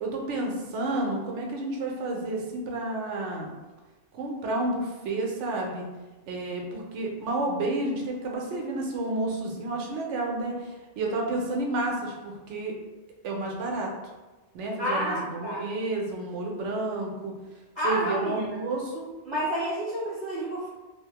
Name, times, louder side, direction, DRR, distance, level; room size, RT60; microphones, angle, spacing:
voice 1, 0.0-3.5 4.1-5.9 6.3-12.7 13.2-13.9 14.5-17.3 17.8-19.1, right 2 dB, 80° right, 0 dB, 0.9 m, -30 dB
voice 2, 14.8-15.6 17.7-18.5 19.2-20.7, equal, 25° right, -11 dB, 0.9 m, -29 dB
2.7 x 2.0 x 2.8 m, 1.2 s
omnidirectional pair, 1.2 m